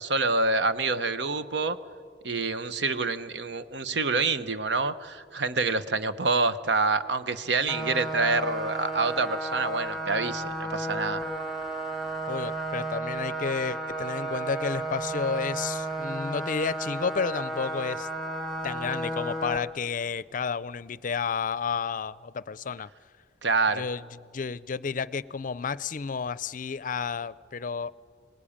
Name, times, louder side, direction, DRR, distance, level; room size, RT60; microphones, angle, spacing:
voice 1, 0.0-1.8 2.2-11.2 23.4-23.8, right 3 dB, 75° right, 12 dB, 1.0 m, -27 dB
sound 1, 7.7-19.6, right 2 dB, ahead, 2.2 m, -33 dB
voice 2, 12.3-18.1 18.6-22.9 23.7-24.0 24.3-27.9, left 5 dB, 50° left, 19 dB, 0.5 m, -31 dB
25.0 x 19.0 x 8.7 m, 2.1 s
head